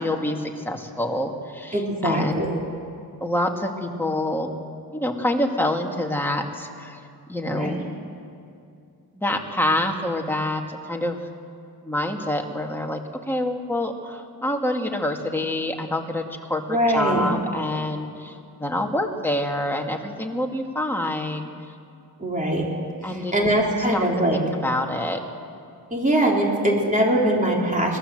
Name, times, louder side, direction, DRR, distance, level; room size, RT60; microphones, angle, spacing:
voice 1, 0.0-2.5 3.2-4.5 4.9-7.0 7.3-7.8 9.1-11.2 11.8-13.0 13.3-21.5 23.0-23.5 23.9-24.0 24.3-25.2, left 1 dB, 5° left, 1 dB, 2.0 m, -26 dB
voice 2, 1.7-2.6 7.5-7.7 16.7-17.3 22.2-22.7 23.0-24.4 25.9-28.0, right 1 dB, 20° right, -2 dB, 3.9 m, -22 dB
24.5 x 19.5 x 7.8 m, 2.4 s
wide cardioid pair, 155°, 39 cm